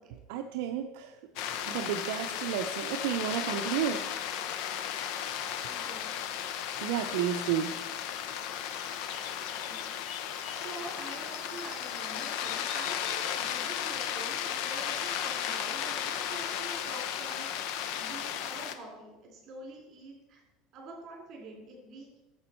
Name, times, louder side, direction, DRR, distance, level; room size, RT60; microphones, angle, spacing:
voice 1, 0.1-1.2 1.7-4.0 6.8-7.7, right 9 dB, 70° right, 4 dB, 0.5 m, -32 dB
sound 1, 1.4-18.7, left 9 dB, 60° left, 0.7 m, -35 dB
voice 2, 5.7-6.4 9.6-9.7 10.2-20.4 20.7-22.2, right 2 dB, 35° right, 0 dB, 3.2 m, -46 dB
9.5 x 7.0 x 4.4 m, 1.1 s
cardioid pair, 155°, 0 cm